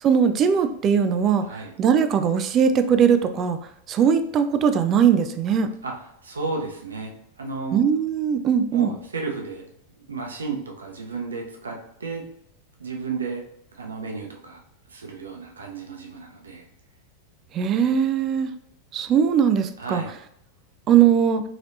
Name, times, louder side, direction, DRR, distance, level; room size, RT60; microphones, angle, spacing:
voice 1, 0.0-1.4 1.8-3.6 3.9-5.7 7.7-8.9 17.5-18.5 18.9-20.0 20.9-21.4, right 7 dB, 30° right, 10 dB, 0.3 m, -20 dB
voice 2, 1.4-1.7 5.8-5.9 6.2-7.8 8.7-9.6 10.1-12.2 12.8-13.4 13.7-14.6 14.9-16.6 19.8-20.1, right 4 dB, 70° right, 1 dB, 0.7 m, -33 dB
3.9 x 3.2 x 2.6 m, 0.75 s
figure-of-eight pair, 90°, 0 cm